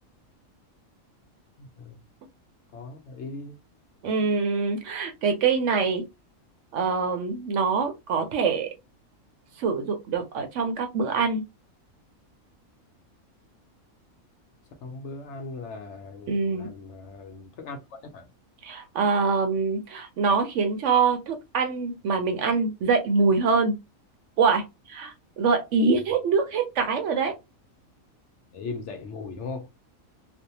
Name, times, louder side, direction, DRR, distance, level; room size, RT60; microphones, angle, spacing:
voice 1, 1.6-2.0 2.7-3.6 14.8-17.8 18.1-18.3 28.5-29.7, left 3 dB, 65° left, 0.8 m, -38 dB
voice 2, 4.0-6.0 6.7-8.7 9.6-11.4 16.3-16.7 18.6-23.7 24.4-27.3, right 4 dB, 65° right, 0.8 m, -24 dB
2.6 x 2.1 x 2.7 m
omnidirectional pair, 1.5 m